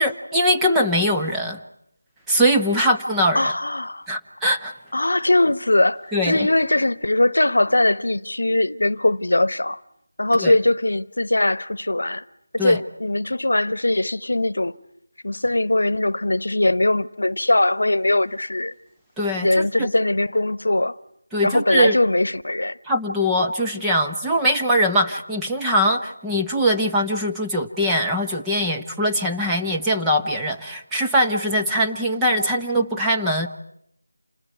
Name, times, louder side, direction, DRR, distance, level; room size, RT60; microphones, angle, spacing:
voice 1, 0.0-1.6 2.3-3.5 4.1-4.7 6.1-6.5 10.4-10.5 12.6-12.8 19.2-19.9 21.3-22.0 22.9-33.5, equal, 5° right, 1.0 m, -22 dB
voice 2, 3.3-4.1 4.9-9.8 10.2-12.2 12.5-14.8 15.2-18.7 19.4-21.0 21.4-22.8, left 2 dB, 75° left, 1.0 m, -21 dB
28.0 x 20.0 x 9.4 m
figure-of-eight pair, 170°, 0 cm